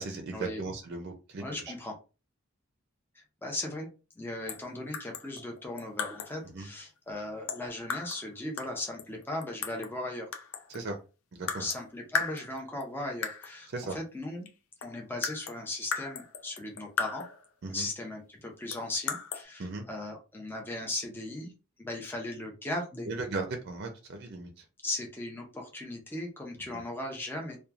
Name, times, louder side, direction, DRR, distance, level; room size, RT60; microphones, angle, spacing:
voice 1, 0.0-1.4 6.5-6.7 10.7-10.9 11.3-11.7 13.7-14.0 17.6-17.9 19.6-19.8 23.1-24.6, right 3 dB, 50° right, 4 dB, 0.5 m, -36 dB
voice 2, 1.4-2.0 3.4-3.9 4.2-10.3 11.6-14.5 14.8-17.3 17.7-21.5 21.8-23.1 24.8-27.6, left 2 dB, 10° left, 0 dB, 0.5 m, -37 dB
sound 1, 4.5-4.7 4.9-6.4 7.5-8.3 8.6-10.0 10.3-10.9 11.5-11.8 12.1-12.8 13.2-13.6 14.5-14.6 14.8-17.5 18.7-19.4, left 6 dB, 70° left, 0.5 m, -36 dB
2.9 x 2.2 x 2.3 m, 0.32 s
head